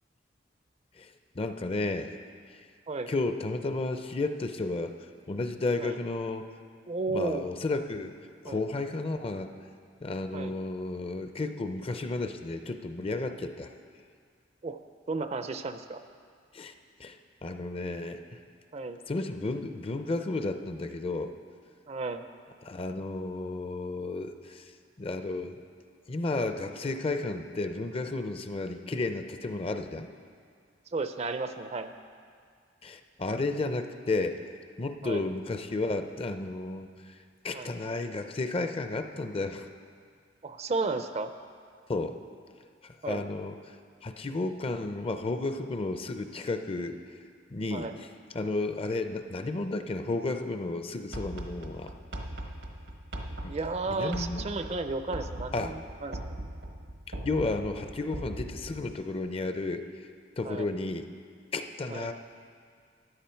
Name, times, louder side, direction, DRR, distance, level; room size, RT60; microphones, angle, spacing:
voice 1, 1.0-2.2 2.5-2.6 3.1-4.9 5.3-6.5 7.1-8.1 8.4-9.5 10.0-13.7 16.5-16.7 17.0-18.4 19.1-21.3 22.6-24.7 25.0-25.6 26.1-30.1 32.8-34.4 34.8-37.2 37.4-39.7 41.9-42.2 42.8-43.6 44.0-47.0 47.5-51.9 53.4-53.5 53.9-54.5 55.5-55.8 57.2-59.9 60.4-61.1 61.5-62.1, left 2 dB, 30° left, 8 dB, 0.5 m, -32 dB
voice 2, 6.9-7.4 8.5-8.6 10.3-10.5 14.6-14.8 15.1-16.0 18.7-19.0 21.9-22.2 30.9-31.9 35.0-35.2 37.5-37.7 40.4-41.3 43.0-43.2 47.7-47.9 53.5-56.2 60.4-60.7 61.9-62.1, right 3 dB, 35° right, 9 dB, 0.5 m, -33 dB
sound 1, 51.1-59.0, right 1 dB, 85° right, 1.2 m, -40 dB
14.0 x 9.8 x 4.5 m, 2.2 s
head